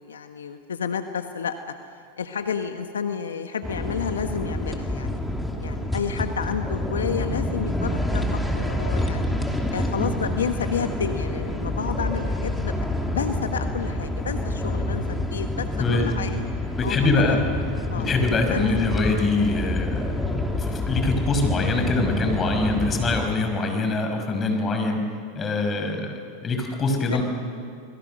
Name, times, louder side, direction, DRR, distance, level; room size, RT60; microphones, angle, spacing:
voice 1, 0.0-1.7 2.2-5.2 5.6-9.3 9.7-12.7 13.1-16.4 16.8-17.4 17.9-18.1 18.5-18.7 27.0-27.2, left 7 dB, 90° left, 7 dB, 1.3 m, -30 dB
sound 1, 3.6-23.3, left 1 dB, 5° left, 3.0 m, -27 dB
voice 2, 16.8-17.4 17.9-20.1 20.6-25.0 25.3-27.2, left 3 dB, 30° left, 4 dB, 5.8 m, -24 dB
29.5 x 22.0 x 6.6 m, 2.3 s
hypercardioid pair, 100°, 0 cm